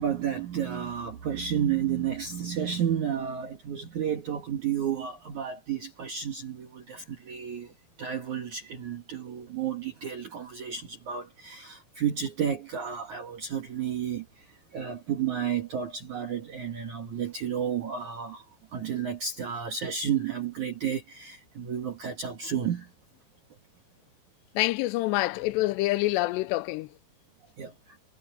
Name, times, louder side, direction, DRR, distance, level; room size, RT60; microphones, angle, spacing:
voice 1, 0.0-7.7 8.0-22.9 27.6-28.0, right 8 dB, 55° right, 2.6 m, -32 dB
voice 2, 24.6-26.9, left 19 dB, 85° left, 2.8 m, -26 dB
omnidirectional pair, 4.9 m